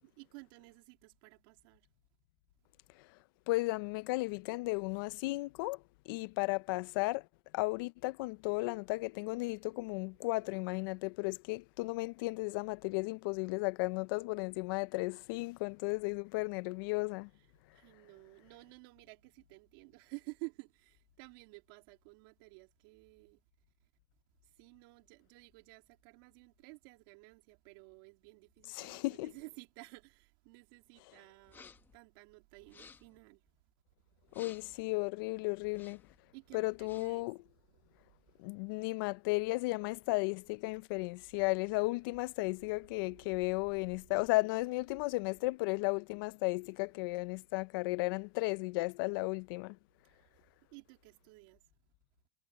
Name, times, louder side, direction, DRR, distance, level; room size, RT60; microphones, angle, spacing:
voice 1, 0.0-1.9 17.7-23.4 24.4-33.4 36.3-37.3 37.8-38.2 43.3-43.4 50.0-50.3 50.7-51.6, right 28 dB, 65° right, 3.1 m, -53 dB
voice 2, 3.5-7.3 7.5-17.3 28.7-29.3 34.3-36.0 36.5-37.4 38.4-49.8, left 24 dB, 65° left, 0.6 m, -34 dB
sound 1, 31.4-32.0 32.6-33.2 34.3-34.8 35.6-36.2 36.7-37.2, left 5 dB, 15° left, 1.1 m, -57 dB
supercardioid pair, 155°, 12 cm